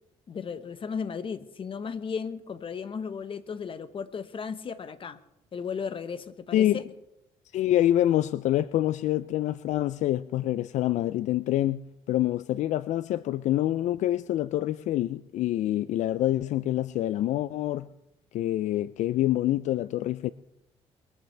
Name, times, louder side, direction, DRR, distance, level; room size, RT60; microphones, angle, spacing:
voice 1, 0.3-5.2 5.5-6.8, left 6 dB, 45° left, 1.1 m, -35 dB
voice 2, 7.5-17.9 18.3-20.3, left 13 dB, 70° left, 0.4 m, -26 dB
22.5 x 14.5 x 3.4 m
cardioid pair, 80°, 13 cm